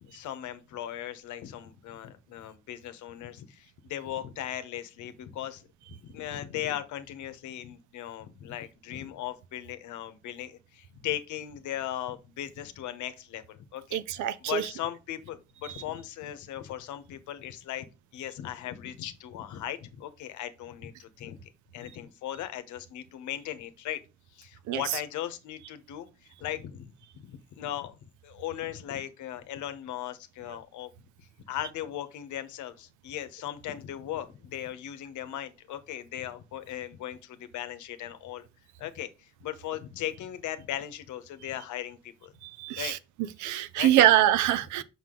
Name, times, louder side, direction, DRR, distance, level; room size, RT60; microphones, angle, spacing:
voice 1, 0.0-17.9 18.1-21.4 21.7-24.0 24.3-28.0 28.2-30.9 31.2-38.5 38.8-42.3 42.8-43.0 43.8-44.1, left 11 dB, 85° left, 0.9 m, -38 dB
voice 2, 13.9-14.6 24.7-24.8 42.4-43.0 43.4-44.8, right 12 dB, 90° right, 0.6 m, -24 dB
5.9 x 5.8 x 3.7 m
supercardioid pair, 60°, 29 cm